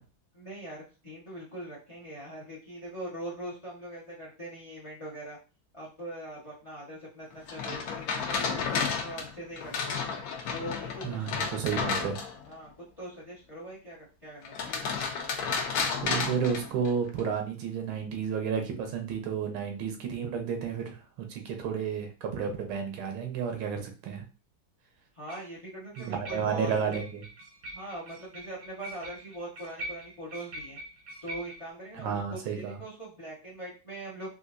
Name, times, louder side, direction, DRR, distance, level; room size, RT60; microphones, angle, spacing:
voice 1, 0.3-5.4 5.7-10.0 10.5-11.9 12.5-14.8 25.1-27.0 27.7-30.8 31.2-34.3, right 1 dB, 50° left, -4 dB, 0.3 m, -42 dB
sound 1, 7.5-12.5 14.4-17.2, left 5 dB, 75° left, 0.8 m, -32 dB
voice 2, 11.0-12.2 16.0-24.2 26.0-27.3 31.9-32.8, right 7 dB, 85° right, 4 dB, 1.6 m, -32 dB
sound 2, 25.3-25.5 26.0-31.7, right 1 dB, 60° right, 0.8 m, -44 dB
4.3 x 2.5 x 2.5 m, 0.33 s
omnidirectional pair, 2.2 m